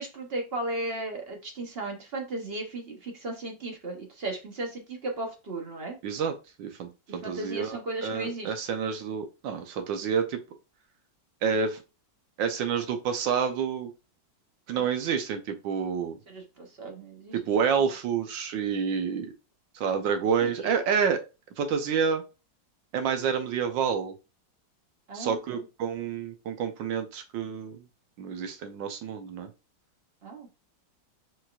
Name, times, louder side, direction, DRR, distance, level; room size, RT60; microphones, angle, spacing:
voice 1, 0.0-6.0 7.1-8.5 16.3-17.4 20.4-20.7 25.1-25.6 30.2-30.5, right 2 dB, 45° right, 2 dB, 0.9 m, -36 dB
voice 2, 6.0-10.4 11.4-11.8 12.4-13.9 14.7-16.2 17.3-19.3 19.7-21.2 21.6-22.2 22.9-24.1 25.1-27.8 28.2-29.5, right 6 dB, 80° right, 6 dB, 1.5 m, -28 dB
4.4 x 4.0 x 2.4 m, 0.29 s
omnidirectional pair, 2.0 m